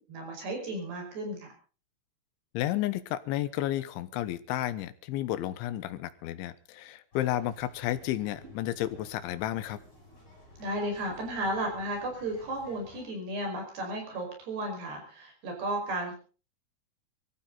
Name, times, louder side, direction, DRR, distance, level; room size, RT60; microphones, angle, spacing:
voice 1, 0.1-1.5 10.6-16.2, right 1 dB, 60° right, 2 dB, 7.2 m, -34 dB
voice 2, 2.5-9.8, left 13 dB, 80° left, 14 dB, 3.3 m, -32 dB
sound 1, 7.1-13.0, left 1 dB, 20° left, 8.5 m, -54 dB
23.5 x 14.5 x 4.0 m, 0.38 s
omnidirectional pair, 5.5 m